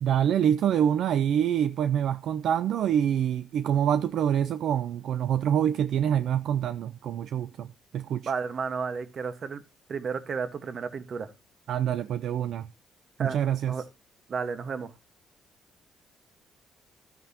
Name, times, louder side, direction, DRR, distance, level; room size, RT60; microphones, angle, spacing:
voice 1, 0.0-8.3 11.7-12.7 13.2-13.7, right 9 dB, 75° right, 0.5 m, -26 dB
voice 2, 8.2-9.6 9.9-11.3 13.2-13.4 13.7-13.8 14.3-14.9, right 5 dB, 50° right, 1.3 m, -32 dB
12.0 x 9.0 x 2.9 m
cardioid pair, 90°, 0 cm